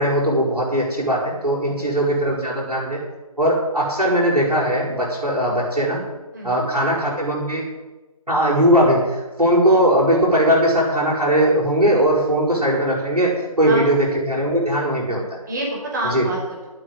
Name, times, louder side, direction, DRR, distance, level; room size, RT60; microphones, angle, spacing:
voice 1, 0.0-3.0 3.4-6.0 6.4-7.6 8.3-15.4 16.1-16.2, equal, 80° right, -5 dB, 6.4 m, -19 dB
voice 2, 1.7-2.1 6.3-6.6 13.6-14.1 15.5-16.7, right 1 dB, 30° right, -3 dB, 5.1 m, -28 dB
10.0 x 9.2 x 9.7 m, 1.1 s
figure-of-eight pair, 155°, 19 cm